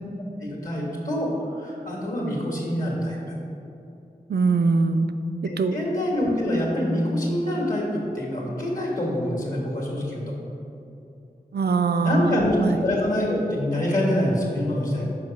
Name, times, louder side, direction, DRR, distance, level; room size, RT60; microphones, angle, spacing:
voice 1, 0.4-3.2 5.4-7.9 8.1-10.2 12.0-15.0, left 1 dB, 55° left, -3 dB, 1.5 m, -25 dB
voice 2, 4.3-5.1 5.6-5.8 11.5-12.8, right 4 dB, 80° right, 9 dB, 0.4 m, -22 dB
5.8 x 4.9 x 5.1 m, 2.8 s
wide cardioid pair, 60°, 16 cm